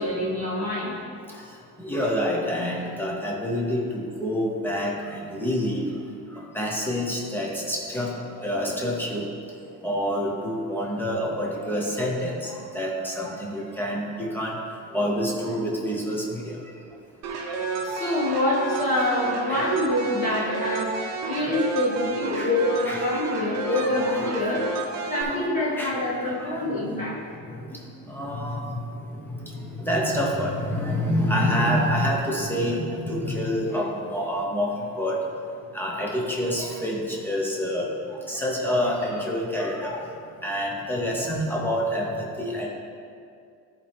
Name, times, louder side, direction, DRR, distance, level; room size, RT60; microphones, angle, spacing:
voice 1, 0.0-0.9 17.8-21.0 21.3-27.2, left 1 dB, 20° left, -7 dB, 2.0 m, -26 dB
voice 2, 0.7-17.0 17.8-18.0 19.5-19.7 21.3-21.5 22.3-22.5 22.8-42.7, equal, 5° left, -3 dB, 0.9 m, -28 dB
sound 1, 17.2-25.2, right 3 dB, 45° right, 0.8 m, -31 dB
12.0 x 4.4 x 3.5 m, 2.4 s
cardioid pair, 160°, 37 cm